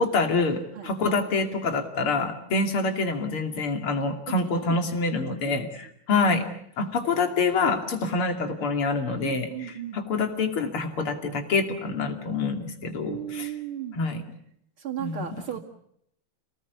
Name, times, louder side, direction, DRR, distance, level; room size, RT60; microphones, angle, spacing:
voice 1, 0.0-6.4 6.8-13.5 13.9-14.2 15.0-15.3, left 3 dB, 90° left, 6 dB, 3.6 m, -26 dB
voice 2, 9.2-10.0 13.1-14.0 14.8-15.6, right 10 dB, 85° right, 0 dB, 3.0 m, -36 dB
28.5 x 19.0 x 8.3 m, 0.72 s
omnidirectional pair, 2.3 m